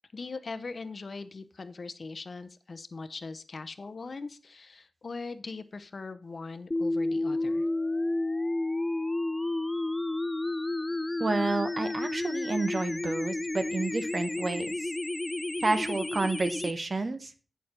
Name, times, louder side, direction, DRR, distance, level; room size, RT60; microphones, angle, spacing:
voice 1, 0.1-7.7, left 4 dB, 60° left, 12 dB, 0.7 m, -40 dB
sound 1, 6.7-16.7, left 2 dB, 25° left, 0.4 m, -31 dB
voice 2, 11.2-14.9 15.6-17.3, right 3 dB, 50° right, 9 dB, 1.0 m, -30 dB
8.1 x 6.7 x 4.3 m, 0.36 s
cardioid pair, 65°, 0 cm